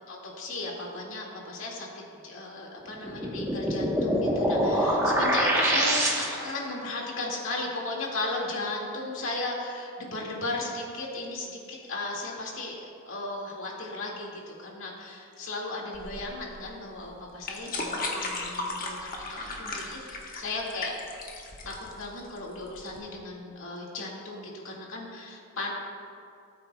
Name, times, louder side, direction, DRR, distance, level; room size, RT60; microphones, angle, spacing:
voice 1, 0.1-1.9 2.2-12.8 13.0-20.9 21.6-25.7, left 2 dB, 65° left, -2 dB, 2.1 m, -36 dB
sound 1, 3.0-6.6, equal, 15° right, 1.1 m, -25 dB
sound 2, 15.9-23.0, left 2 dB, 40° left, 1.2 m, -36 dB
18.5 x 9.0 x 2.3 m, 2.4 s
head